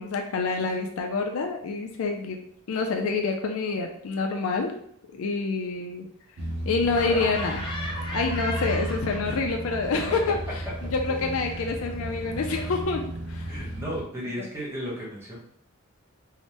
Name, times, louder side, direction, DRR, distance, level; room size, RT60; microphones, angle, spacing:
voice 1, 0.0-2.4 2.7-4.8 5.1-6.1 6.7-7.6 8.1-10.4 10.9-13.6 14.4-14.5, left 4 dB, 80° left, 3 dB, 0.4 m, -27 dB
sound 1, 6.4-14.0, right 1 dB, 60° right, 0.6 m, -34 dB
Laughter, 6.9-9.6 9.9-12.8, left 1 dB, 25° left, 0.6 m, -38 dB
voice 2, 13.5-15.4, equal, 10° right, -5 dB, 1.0 m, -34 dB
2.7 x 2.1 x 3.2 m, 0.67 s
head